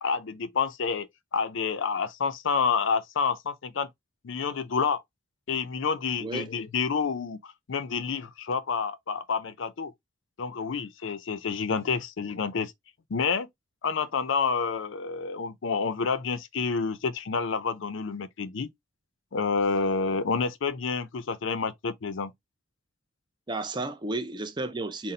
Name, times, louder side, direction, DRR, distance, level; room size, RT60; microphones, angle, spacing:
voice 1, 0.0-3.9 4.2-5.0 5.5-9.9 10.4-12.7 13.1-13.5 13.8-18.7 19.3-22.3, left 5 dB, 65° left, 0.5 m, -29 dB
voice 2, 23.5-25.1, right 2 dB, 20° right, 0.5 m, -32 dB
4.1 x 2.1 x 3.8 m
head